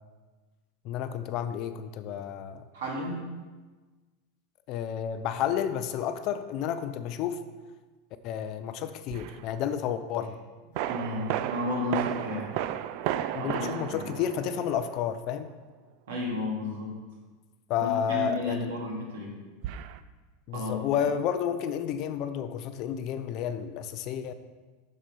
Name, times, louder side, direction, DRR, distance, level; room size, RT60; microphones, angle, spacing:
voice 1, 0.8-2.6 4.7-7.4 8.2-10.4 13.3-15.5 17.7-18.7 20.5-24.3, left 9 dB, 35° left, 10 dB, 0.5 m, -31 dB
voice 2, 2.7-3.3 10.9-12.5 13.4-14.1 16.1-16.9 17.8-19.3 20.5-20.8, left 1 dB, 75° right, -2 dB, 2.8 m, -33 dB
sound 1, 9.1-9.4 10.7-15.2 19.6-20.0, right 11 dB, 45° right, 0.3 m, -33 dB
7.4 x 6.7 x 5.3 m, 1.3 s
supercardioid pair, 170°, 0 cm